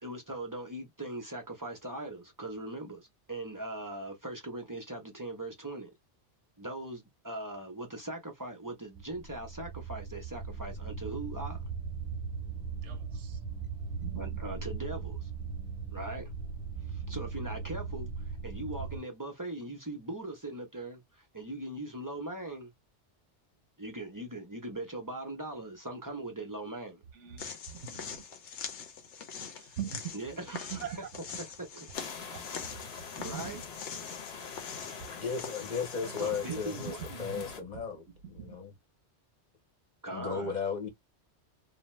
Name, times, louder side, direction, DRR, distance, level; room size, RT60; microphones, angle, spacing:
voice 1, 0.0-5.9 6.6-11.6 14.2-15.3 15.9-16.3 16.9-18.1 18.4-22.7 23.8-27.0 30.1-31.0 31.4-31.9 33.2-33.6 34.9-35.0 36.2-37.0 40.0-40.5, right 1 dB, 25° right, 0.5 m, -40 dB
sound 1, 9.0-19.0, right 5 dB, ahead, 0.8 m, -38 dB
voice 2, 12.8-13.4 14.0-14.4 27.1-27.4 27.7-28.0 29.6-31.2 32.3-32.6 33.2-33.6 34.7-35.0 36.0-38.6, right 9 dB, 85° right, 1.0 m, -43 dB
sound 2, 27.4-37.1, left 6 dB, 85° left, 1.1 m, -44 dB
sound 3, 31.9-37.6, left 6 dB, 65° left, 1.0 m, -44 dB
voice 3, 35.1-38.0 38.3-38.7 40.1-40.9, left 6 dB, 45° left, 0.9 m, -35 dB
2.6 x 2.1 x 3.1 m
omnidirectional pair, 1.2 m